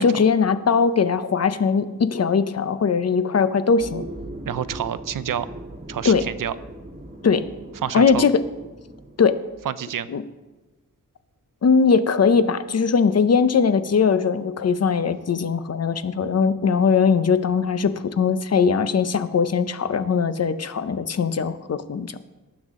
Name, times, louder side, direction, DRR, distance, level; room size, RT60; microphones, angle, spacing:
voice 1, 0.0-4.0 6.1-6.2 7.2-7.5 7.9-8.3 9.2-9.4 10.1-10.2 11.6-22.2, left 5 dB, 50° left, 12 dB, 0.7 m, -20 dB
sound 1, 3.8-9.8, right 1 dB, 25° right, 1.4 m, -39 dB
voice 2, 4.5-5.5 5.9-6.5 7.7-8.3 9.6-10.1, right 9 dB, 75° right, 15 dB, 0.6 m, -28 dB
18.5 x 8.3 x 3.7 m, 1.2 s
wide cardioid pair, 140°, 33 cm